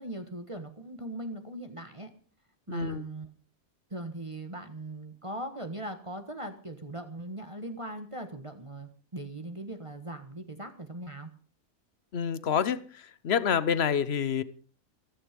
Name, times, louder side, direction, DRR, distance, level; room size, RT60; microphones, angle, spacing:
voice 1, 0.0-2.1 2.7-3.3 3.9-11.3, right 1 dB, 25° right, 1.5 m, -40 dB
voice 2, 2.7-3.0 12.1-12.8 13.2-14.4, left 7 dB, 50° left, 1.1 m, -27 dB
15.0 x 14.5 x 5.2 m
omnidirectional pair, 1.4 m